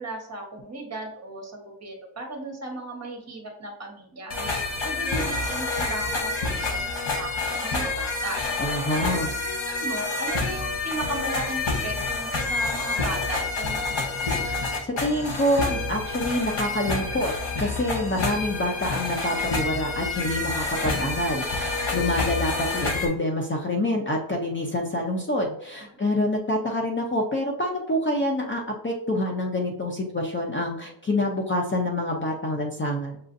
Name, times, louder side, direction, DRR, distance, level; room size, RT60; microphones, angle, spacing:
voice 1, 0.0-8.4 9.0-9.2 9.4-14.3 25.8-26.1, right 2 dB, 35° right, 1 dB, 1.2 m, -36 dB
sound 1, 4.3-23.1, left 3 dB, 90° left, 1.2 m, -28 dB
voice 2, 8.6-9.3 14.4-17.3 17.6-33.2, left 1 dB, 25° left, 0 dB, 0.6 m, -27 dB
6.7 x 2.5 x 2.6 m, 0.75 s
wide cardioid pair, 130°, 47 cm